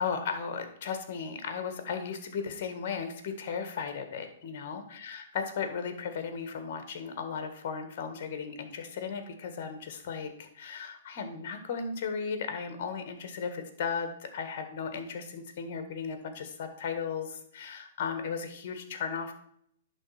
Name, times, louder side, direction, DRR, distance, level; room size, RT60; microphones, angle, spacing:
voice 1, 0.0-19.3, left 6 dB, 50° left, 8 dB, 1.7 m, -36 dB
11.0 x 3.9 x 5.9 m, 0.68 s
hypercardioid pair, 115°, 0 cm